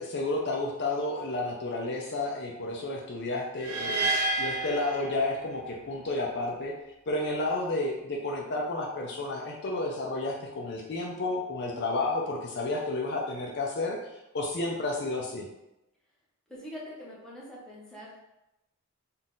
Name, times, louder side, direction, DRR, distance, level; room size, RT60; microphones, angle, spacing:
voice 1, 0.0-6.7 7.1-14.0 14.3-15.5, left 2 dB, 50° left, -1 dB, 0.5 m, -31 dB
sound 1, 3.6-5.8, right 2 dB, 80° right, 0.4 m, -30 dB
voice 2, 16.5-18.2, equal, 5° left, -7 dB, 1.0 m, -43 dB
4.0 x 2.4 x 3.7 m, 0.93 s
head